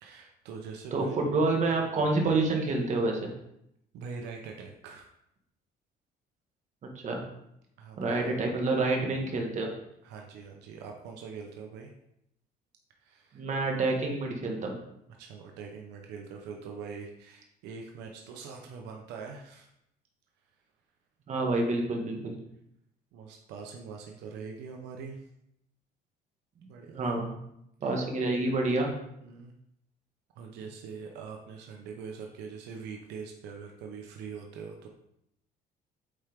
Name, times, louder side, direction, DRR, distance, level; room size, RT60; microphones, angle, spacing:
voice 1, 0.0-1.3 3.9-5.1 7.8-8.3 10.0-11.9 13.0-13.4 15.2-19.7 23.1-25.2 26.7-27.0 27.8-28.0 29.2-29.5 30.4-34.9, right 5 dB, 90° right, 2 dB, 0.9 m, -43 dB
voice 2, 0.9-3.3 6.9-7.2 8.0-9.7 13.3-14.8 21.3-22.3 26.9-27.3 27.8-28.9, right 3 dB, 45° right, 1 dB, 1.7 m, -28 dB
8.6 x 4.5 x 3.6 m, 0.79 s
cardioid pair, 110°, 17 cm